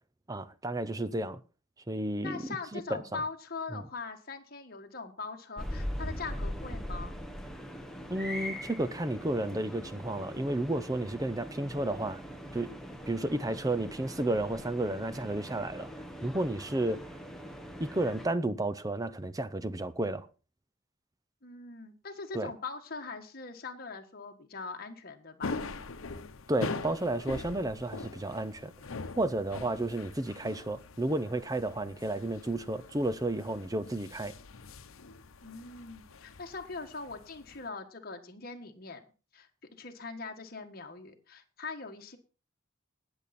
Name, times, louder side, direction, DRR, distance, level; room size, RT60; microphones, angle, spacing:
voice 1, 0.3-1.4 1.9-2.4 2.7-3.2 3.7-3.8 8.1-12.2 12.5-12.8 13.1-15.9 16.2-17.0 17.8-20.3 22.3-22.5 26.5-28.7 29.2-34.3, right 1 dB, 15° right, 0.6 m, -32 dB
voice 2, 2.2-7.2 21.4-25.6 35.4-39.0 39.3-42.2, left 4 dB, 45° left, 1.5 m, -41 dB
sound 1, 5.6-18.3, equal, ahead, 1.2 m, -41 dB
sound 2, 25.4-37.7, left 3 dB, 80° left, 0.9 m, -43 dB
19.5 x 6.9 x 4.2 m
head